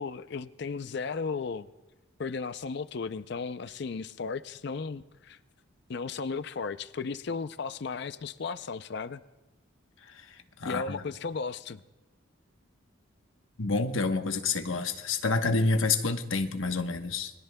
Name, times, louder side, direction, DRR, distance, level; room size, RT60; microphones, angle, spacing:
voice 1, 0.0-1.7 2.2-5.4 5.9-9.2 10.6-11.8, left 4 dB, 55° left, 13 dB, 0.5 m, -35 dB
voice 2, 10.1-11.0 13.6-17.3, left 3 dB, 75° left, 6 dB, 1.1 m, -28 dB
28.0 x 22.5 x 2.2 m, 1.1 s
head